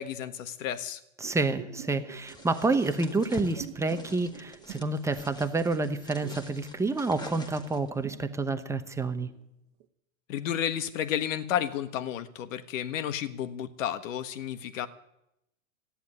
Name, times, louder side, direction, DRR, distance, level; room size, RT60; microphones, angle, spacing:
voice 1, 0.0-1.0 10.3-14.9, left 10 dB, 65° left, 11 dB, 1.5 m, -32 dB
voice 2, 1.2-9.3, right 3 dB, 5° right, 9 dB, 0.9 m, -29 dB
sound 1, 1.2-5.6 5.9-9.4 9.8-9.9, right 13 dB, 40° right, 1.3 m, -47 dB
sound 2, 2.3-8.0, left 2 dB, 10° left, 1.6 m, -45 dB
14.5 x 10.0 x 9.7 m, 0.84 s
hypercardioid pair, 125°, 42 cm